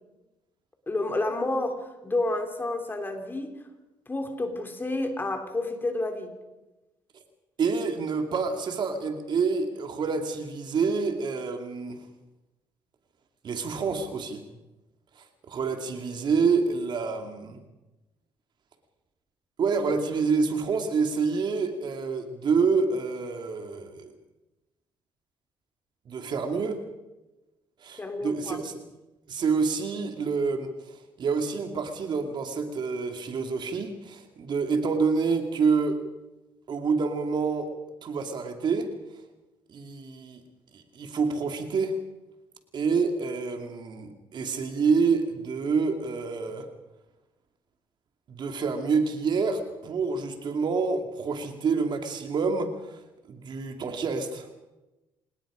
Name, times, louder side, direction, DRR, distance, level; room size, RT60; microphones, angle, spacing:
voice 1, 0.9-3.5 4.1-6.3 28.0-28.6, left 2 dB, 20° left, 5 dB, 3.3 m, -30 dB
voice 2, 7.6-12.0 13.4-14.4 15.5-17.6 19.6-24.1 26.1-26.8 27.8-28.8 29.3-30.7 31.2-36.0 36.7-37.7 38.0-38.9 39.7-40.4 40.7-42.0 42.7-46.7 48.3-53.0 53.3-54.5, right 5 dB, 55° right, 5 dB, 2.6 m, -27 dB
26.5 x 19.5 x 5.1 m, 1.0 s
cardioid pair, 95°, 9 cm